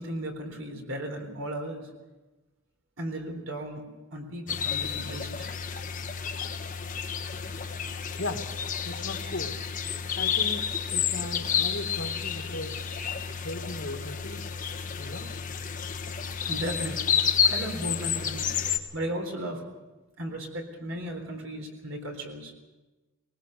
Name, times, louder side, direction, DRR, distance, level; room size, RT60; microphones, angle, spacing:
voice 1, 0.0-1.9 3.0-3.8 4.1-5.5 16.5-17.1 17.4-18.7 18.9-19.6 20.2-22.5, right 1 dB, 65° right, 3 dB, 3.9 m, -35 dB
sound 1, 4.5-18.8, left 7 dB, 35° left, 1.2 m, -30 dB
voice 2, 8.8-9.6 10.1-12.7 13.4-14.5 15.0-15.3, left 2 dB, 60° left, 5 dB, 1.9 m, -37 dB
20.5 x 19.5 x 6.7 m, 1.1 s
head